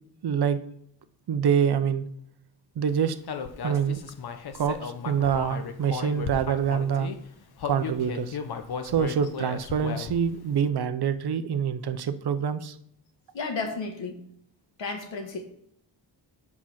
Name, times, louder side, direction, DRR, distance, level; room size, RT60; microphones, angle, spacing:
voice 1, 0.2-0.6 1.3-2.1 2.8-3.2 3.6-4.0 4.5-7.1 7.6-8.4 8.8-12.8, right 7 dB, 60° right, 11 dB, 0.7 m, -26 dB
Human voice, 3.3-7.2 7.6-10.3, left 6 dB, 55° left, 0.8 m, -35 dB
voice 2, 13.3-14.2 14.8-15.4, left 4 dB, 80° left, 5 dB, 1.5 m, -32 dB
7.4 x 6.0 x 5.8 m, 0.73 s
wide cardioid pair, 175°, 44 cm